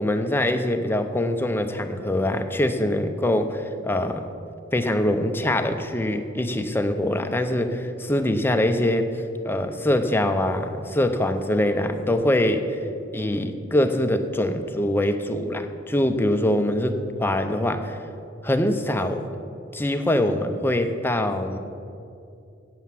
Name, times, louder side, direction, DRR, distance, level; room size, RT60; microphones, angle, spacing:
voice 1, 0.0-4.2 4.7-9.1 9.4-12.6 13.1-18.0 18.4-19.2 19.7-21.6, left 1 dB, 10° left, 7 dB, 0.5 m, -23 dB
8.3 x 7.9 x 7.3 m, 2.6 s
head